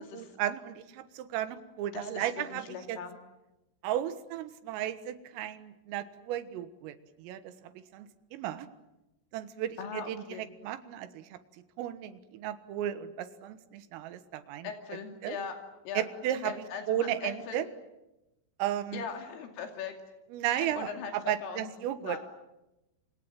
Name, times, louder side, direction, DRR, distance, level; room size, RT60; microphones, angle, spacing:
voice 1, 0.0-3.0 3.8-8.7 9.3-11.4 11.8-14.7 15.2-15.4 16.0-17.7 18.6-19.0 20.3-22.2, right 11 dB, 90° right, 12 dB, 4.1 m, -35 dB
voice 2, 1.9-3.1 9.8-10.4 14.6-15.6 15.8-16.0 16.5-17.6 18.9-19.9 20.5-21.7 22.0-22.2, left 6 dB, 85° left, 4 dB, 5.1 m, -40 dB
29.5 x 26.5 x 7.6 m, 0.95 s
omnidirectional pair, 5.7 m